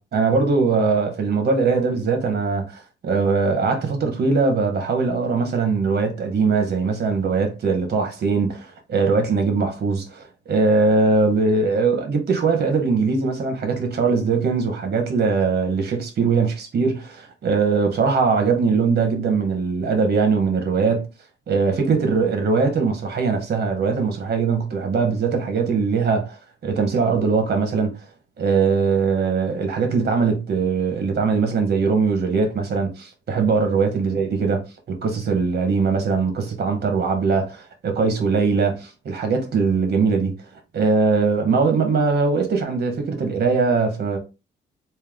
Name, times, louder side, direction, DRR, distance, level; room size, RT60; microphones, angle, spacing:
voice 1, 0.0-21.1 21.5-27.9 28.4-40.3 40.7-44.2, right 4 dB, 55° right, 1.3 m, -21 dB
3.5 x 2.7 x 3.7 m
cardioid pair, 90°, 20 cm